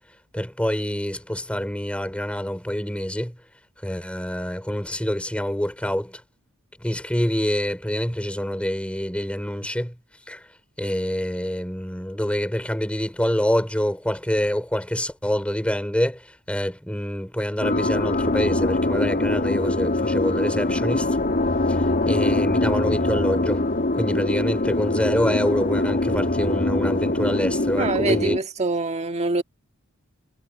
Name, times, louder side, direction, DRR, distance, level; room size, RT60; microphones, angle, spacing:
voice 1, 0.3-3.3 3.8-6.2 6.8-9.9 10.3-10.4 10.8-21.2 21.7-23.6 23.9-28.3, equal, 5° left, 3.3 m, -26 dB
sound 1, 17.6-28.4, left 2 dB, 45° left, 2.3 m, -23 dB
voice 2, 27.8-29.4, right 2 dB, 30° right, 1.7 m, -24 dB
head